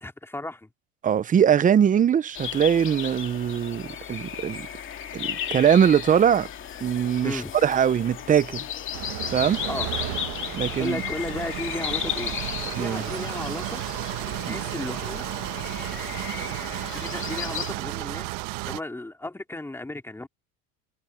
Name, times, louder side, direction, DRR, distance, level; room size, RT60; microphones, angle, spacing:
voice 1, 0.0-0.7 7.2-7.5 9.7-9.9 10.8-12.4 12.8-13.8 14.3-15.3 16.9-18.3 18.7-20.3, left 2 dB, 5° left, 2.6 m, -34 dB
voice 2, 1.0-4.7 5.1-6.5 6.8-8.6 9.3-9.6 10.5-11.0 12.8-13.0 14.4-14.6, right 8 dB, 20° right, 0.7 m, -21 dB
sound 1, 2.3-17.7, left 9 dB, 30° left, 2.6 m, -35 dB
sound 2, 5.4-13.5, left 22 dB, 80° left, 3.9 m, -47 dB
sound 3, 8.9-18.8, right 22 dB, 65° right, 1.3 m, -33 dB
supercardioid pair, 120°, 37 cm